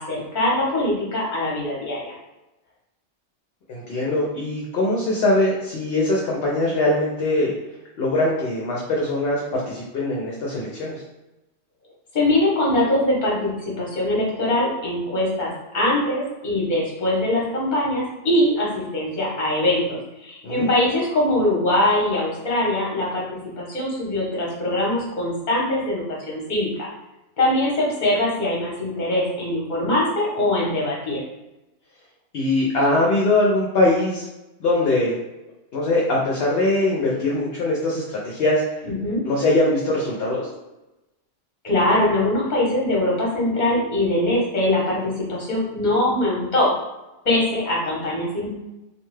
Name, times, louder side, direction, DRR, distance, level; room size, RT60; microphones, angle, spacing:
voice 1, 0.0-2.1 12.1-15.5 15.7-23.3 23.6-26.9 27.4-31.2 38.8-39.2 41.6-46.7 47.2-48.5, left 1 dB, 45° left, -4 dB, 1.0 m, -22 dB
voice 2, 3.7-7.5 8.0-11.0 20.4-20.7 32.3-34.3 34.6-35.2 35.7-38.8 39.2-40.5, left 2 dB, 65° left, -3 dB, 0.7 m, -22 dB
2.6 x 2.2 x 3.1 m, 0.99 s
omnidirectional pair, 1.2 m